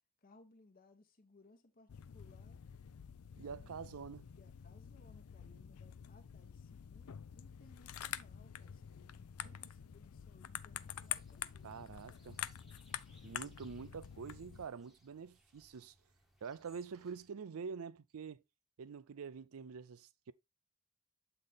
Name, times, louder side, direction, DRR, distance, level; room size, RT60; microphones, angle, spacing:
voice 1, 0.2-2.6 3.6-3.8 4.3-12.3, left 2 dB, 40° left, 0.9 m, -65 dB
sound 1, 1.9-14.7, left 10 dB, 80° left, 0.4 m, -47 dB
voice 2, 3.4-4.3 9.5-9.6 11.6-12.4 13.2-15.9 16.4-18.4 18.8-20.3, right 6 dB, 70° right, 0.5 m, -46 dB
sound 2, 10.8-17.3, equal, ahead, 1.0 m, -70 dB
7.6 x 4.1 x 3.4 m
head